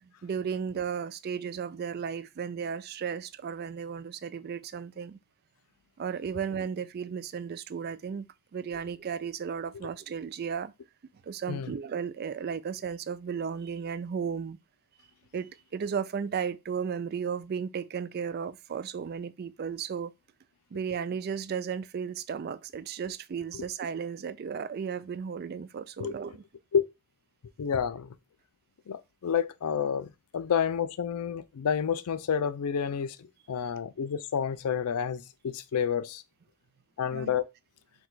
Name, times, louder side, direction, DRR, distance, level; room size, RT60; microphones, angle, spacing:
voice 1, 0.0-5.2 6.0-8.3 8.5-10.7 11.2-14.6 15.3-20.1 20.7-26.4 37.1-37.4, right 6 dB, 45° right, 0.3 m, -34 dB
voice 2, 27.6-28.1 28.9-36.2 37.0-37.4, left 7 dB, 90° left, 0.4 m, -29 dB
4.5 x 2.3 x 3.9 m
head